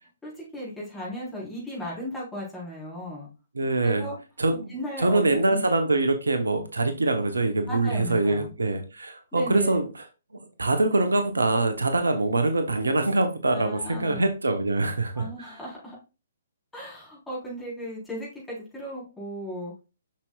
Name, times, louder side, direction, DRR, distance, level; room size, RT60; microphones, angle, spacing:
voice 1, 0.2-3.3 3.8-4.2 4.7-5.6 7.7-8.5 9.3-9.8 13.5-14.3 15.2-16.0 16.7-19.7, equal, 5° left, -6 dB, 3.9 m, -36 dB
voice 2, 3.5-4.1 4.4-4.7 5.0-10.1 10.6-15.6, right 2 dB, 70° right, 7 dB, 1.0 m, -24 dB
7.3 x 6.1 x 2.4 m, 0.30 s
figure-of-eight pair, 125°, 0 cm